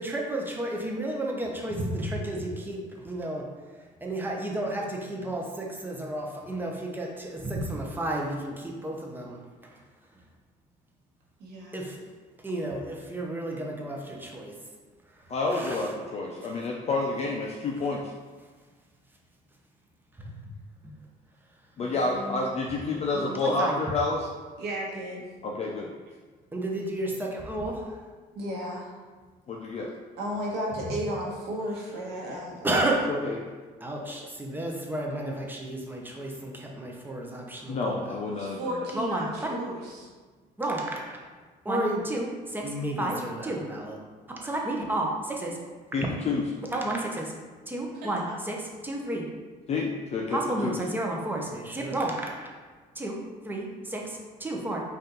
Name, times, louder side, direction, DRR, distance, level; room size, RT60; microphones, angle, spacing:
voice 1, 0.0-3.5 4.0-9.4 11.7-12.0 12.4-14.6 15.5-15.9 16.4-16.6 20.2-20.4 20.8-20.9 23.4-23.7 26.5-28.0 32.6-33.1 33.8-38.2 38.9-39.6 40.6-40.8 41.1-41.2 41.7-44.0 44.4-45.6 46.7-47.3 47.7-48.6 48.8-49.3 50.3-52.5 53.0-53.2 53.4-54.8, right 1 dB, 10° right, -1 dB, 0.7 m, -31 dB
voice 2, 11.4-11.8 21.8-22.4 23.1-23.4 24.6-25.3 28.3-29.0 30.2-32.9 38.3-40.0, equal, 85° right, -3 dB, 1.1 m, -34 dB
voice 3, 15.3-18.0 21.8-24.3 25.4-25.9 29.5-29.9 33.1-33.4 37.7-38.6 45.9-46.4 49.7-50.8, left 3 dB, 40° left, -1 dB, 0.5 m, -29 dB
4.2 x 2.5 x 3.9 m, 1.4 s
cardioid pair, 110°, 17 cm